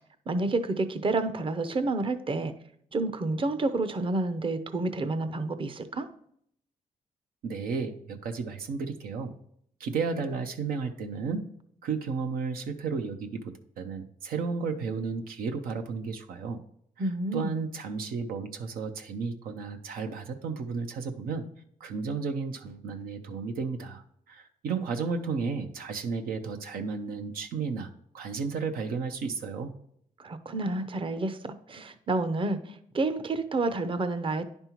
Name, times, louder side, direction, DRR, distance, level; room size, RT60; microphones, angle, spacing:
voice 1, 0.3-2.5 2.9-6.1 17.0-17.7 30.2-31.4 31.7-34.4, right 2 dB, 35° right, 10 dB, 0.6 m, -29 dB
voice 2, 7.4-9.3 9.8-11.4 11.8-13.4 13.8-16.6 17.3-21.4 21.8-24.0 24.3-27.9 28.1-29.7, right 5 dB, 90° right, 5 dB, 0.7 m, -33 dB
9.8 x 5.3 x 3.0 m, 0.67 s
cardioid pair, 70°, 15 cm